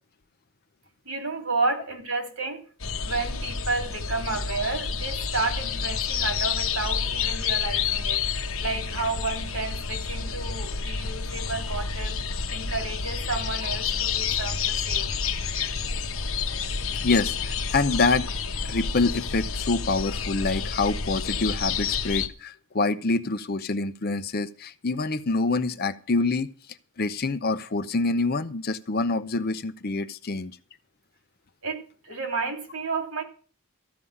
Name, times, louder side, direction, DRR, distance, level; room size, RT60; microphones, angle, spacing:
voice 1, 1.0-2.6 2.9-8.2 8.6-12.2 12.5-15.1 31.6-33.2, right 3 dB, 80° right, 4 dB, 3.2 m, -31 dB
sound 1, 2.8-22.3, left 6 dB, 70° left, 1.1 m, -29 dB
voice 2, 17.0-18.3 18.7-26.5 27.0-30.6, left 3 dB, 45° left, 11 dB, 0.7 m, -26 dB
14.0 x 5.6 x 8.6 m, 0.41 s
head